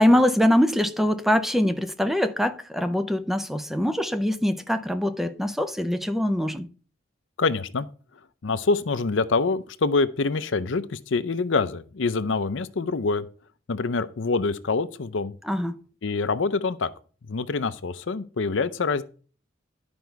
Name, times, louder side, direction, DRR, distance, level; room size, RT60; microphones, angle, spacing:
voice 1, 0.0-6.7 15.4-15.8, left 1 dB, ahead, 0.5 m, -23 dB
voice 2, 7.4-7.9 8.4-13.3 13.7-15.3 16.0-16.9 17.3-19.0, left 4 dB, 70° left, 0.6 m, -25 dB
11.5 x 5.2 x 4.6 m
head